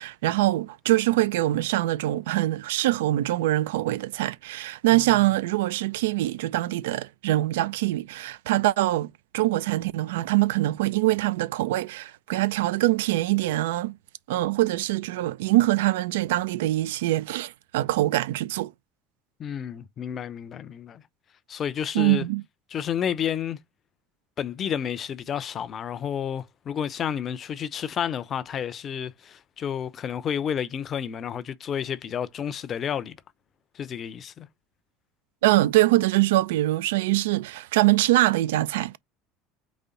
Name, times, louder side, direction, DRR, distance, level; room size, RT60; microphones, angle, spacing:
voice 1, 0.0-14.0 14.3-18.7 21.9-22.4 35.4-39.0, right 17 dB, 75° right, 0.3 m, -23 dB
voice 2, 19.4-21.0 21.5-22.3 22.7-23.6 24.4-33.2 33.7-34.5, left 8 dB, 40° left, 0.6 m, -30 dB
4.2 x 3.3 x 3.8 m
hypercardioid pair, 75°, 0 cm